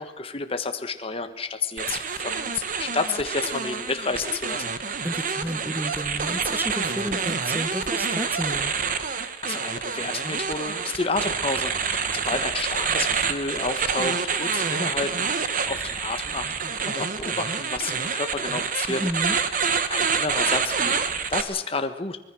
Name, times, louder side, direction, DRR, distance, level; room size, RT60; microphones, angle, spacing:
voice 1, 0.0-4.6 9.4-19.0 19.9-20.9 21.3-22.2, left 3 dB, 30° left, 7 dB, 1.3 m, -30 dB
sound 1, 1.8-21.4, right 6 dB, 45° right, 1.4 m, -27 dB
voice 2, 5.0-8.7 18.9-19.4, equal, 10° right, 10 dB, 1.3 m, -31 dB
24.5 x 21.0 x 6.3 m, 1.0 s
head